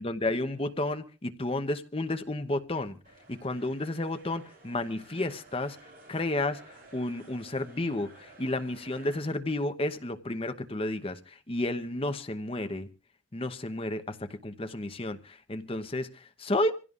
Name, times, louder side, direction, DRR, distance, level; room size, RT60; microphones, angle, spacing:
voice 1, 0.0-3.0 3.3-12.9 13.3-16.7, left 1 dB, 30° left, 0.9 m, -32 dB
sound 1, 3.0-9.2, right 2 dB, 45° right, 7.3 m, -54 dB
27.0 x 16.0 x 2.5 m
head